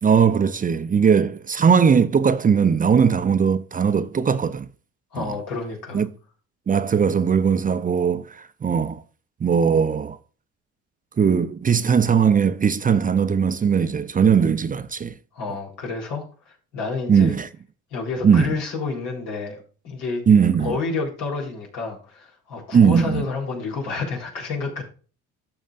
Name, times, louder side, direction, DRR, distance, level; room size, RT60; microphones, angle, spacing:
voice 1, 0.0-4.7 5.2-5.4 5.9-6.1 6.7-9.0 9.4-10.2 11.2-15.1 17.1-17.5 18.2-18.6 20.3-20.8 22.7-23.2, right 6 dB, 25° right, 0.6 m, -19 dB
voice 2, 5.1-6.0 15.3-17.3 17.9-20.2 20.6-24.8, left 4 dB, 85° left, 4.0 m, -29 dB
14.5 x 6.3 x 2.5 m
supercardioid pair, 85°, 32 cm